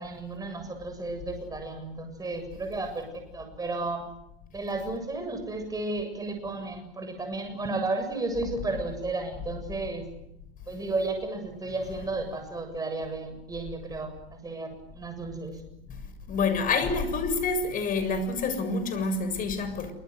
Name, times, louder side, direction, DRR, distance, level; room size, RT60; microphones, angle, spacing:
voice 1, 0.0-4.0 4.5-10.1 10.7-15.6, right 2 dB, 10° right, 7.5 m, -33 dB
voice 2, 15.9-19.9, left 4 dB, 30° left, 7.1 m, -28 dB
28.0 x 25.0 x 8.1 m
hypercardioid pair, 110°, 29 cm